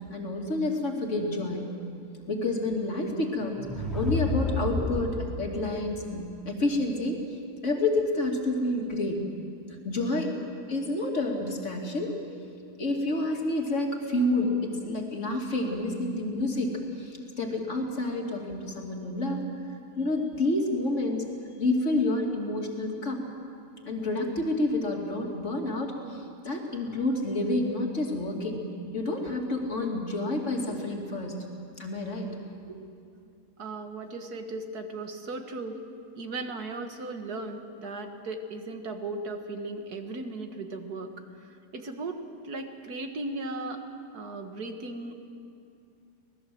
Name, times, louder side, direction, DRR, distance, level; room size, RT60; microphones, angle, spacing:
voice 1, 0.1-1.6 2.3-7.2 7.6-9.3 9.8-10.3 10.7-12.1 12.8-19.4 20.0-21.3 21.6-23.2 23.8-31.4 31.8-32.4 32.7-32.8, left 2 dB, 45° left, 1 dB, 3.0 m, -29 dB
sound 1, 3.4-5.5, left 2 dB, ahead, 2.5 m, -30 dB
voice 2, 33.6-35.8 36.2-41.1 41.7-43.8 44.1-45.2, right 2 dB, 70° right, 6 dB, 2.1 m, -36 dB
25.5 x 19.0 x 7.7 m, 2.4 s
omnidirectional pair, 1.7 m